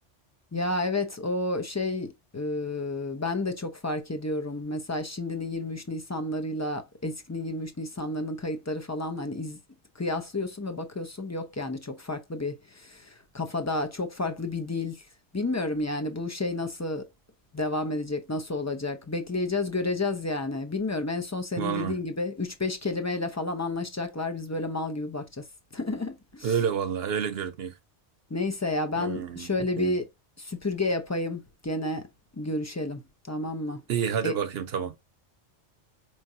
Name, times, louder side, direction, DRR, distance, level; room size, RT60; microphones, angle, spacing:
voice 1, 0.5-9.6 10.0-15.0 15.3-17.1 17.5-25.4 25.7-26.5 28.3-30.0 30.4-32.1 32.3-33.0 33.3-33.8 34.2-34.3, left 2 dB, 20° left, 0.6 m, -31 dB
voice 2, 21.6-22.0 26.4-27.8 29.0-29.5 29.8-30.0 33.9-35.1, right 7 dB, 65° right, 0.8 m, -29 dB
4.9 x 3.2 x 2.6 m
omnidirectional pair, 1.1 m